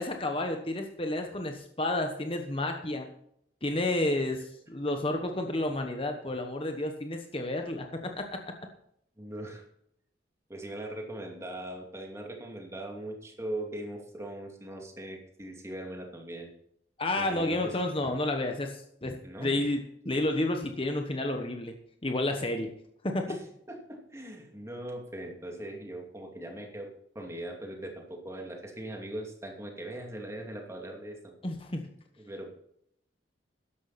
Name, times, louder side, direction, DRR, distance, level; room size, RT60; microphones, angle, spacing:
voice 1, 0.0-3.1 3.6-8.4 17.0-21.7 22.0-22.7 23.0-23.3 31.4-31.8, left 1 dB, 30° left, 4 dB, 1.1 m, -31 dB
voice 2, 9.2-9.6 10.5-16.5 17.1-17.7 19.2-19.7 23.3-23.4 23.7-26.9 27.1-31.3 32.2-32.5, right 1 dB, 15° right, 1 dB, 2.5 m, -40 dB
13.5 x 11.0 x 4.2 m, 0.73 s
head